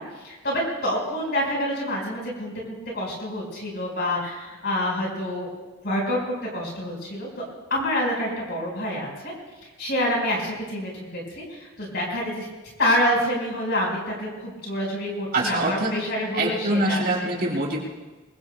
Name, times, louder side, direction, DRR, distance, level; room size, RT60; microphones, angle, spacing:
voice 1, 0.0-5.5 5.8-7.3 7.7-9.3 9.8-12.5 12.8-17.0, left 1 dB, 55° left, -2 dB, 4.8 m, -27 dB
voice 2, 15.3-15.9 16.3-17.8, right 2 dB, 50° right, -3 dB, 4.7 m, -24 dB
24.0 x 23.5 x 2.3 m, 1.2 s
head